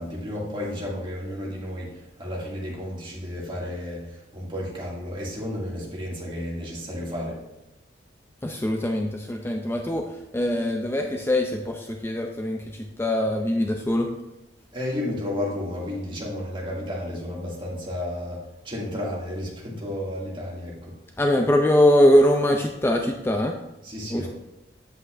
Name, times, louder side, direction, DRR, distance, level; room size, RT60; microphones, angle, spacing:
voice 1, 0.0-7.4 14.7-20.9 23.8-24.3, left 1 dB, 30° right, -5 dB, 2.2 m, -32 dB
voice 2, 8.4-14.1 21.2-23.6 24.1-24.3, left 1 dB, 15° left, 3 dB, 0.4 m, -22 dB
8.2 x 7.7 x 2.5 m, 0.95 s
head